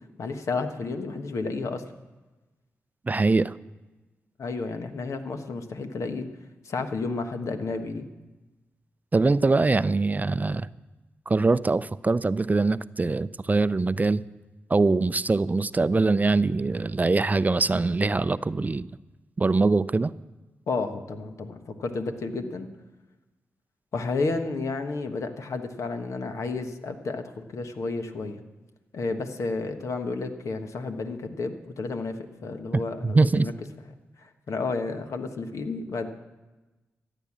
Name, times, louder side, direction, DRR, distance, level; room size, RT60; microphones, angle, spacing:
voice 1, 0.2-1.8 4.4-6.3 6.6-8.1 20.7-22.7 23.9-28.4 28.9-32.2 32.4-33.5 34.2-36.1, left 3 dB, 70° left, 7 dB, 1.3 m, -31 dB
voice 2, 3.1-3.5 9.1-10.7 11.3-14.2 14.7-18.9 19.4-20.1 33.0-33.5, right 3 dB, 30° right, 16 dB, 0.4 m, -23 dB
14.5 x 9.1 x 7.4 m, 1.1 s
supercardioid pair, 45°, 6 cm